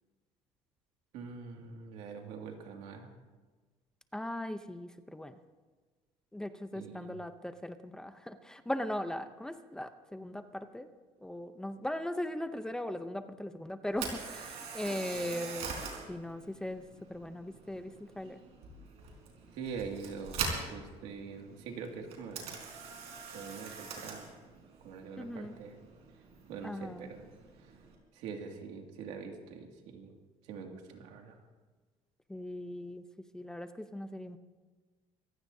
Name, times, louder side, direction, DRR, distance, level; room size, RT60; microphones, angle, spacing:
voice 1, 1.1-3.1 6.7-7.2 19.5-22.6 23.3-24.2 24.8-25.8 26.5-27.3 27.6-27.8 28.1-30.1 30.4-31.4, right 5 dB, 85° right, 2 dB, 2.3 m, -44 dB
voice 2, 4.1-5.4 6.3-10.9 11.2-15.7 16.1-16.8 17.1-18.4 25.2-25.6 26.6-27.1 32.3-33.0 33.3-34.4, left 1 dB, 5° left, 9 dB, 0.6 m, -39 dB
Camera, 13.9-28.0, right 5 dB, 65° right, 4.3 m, -43 dB
25.5 x 16.0 x 2.7 m, 1.3 s
cardioid pair, 145°, 12 cm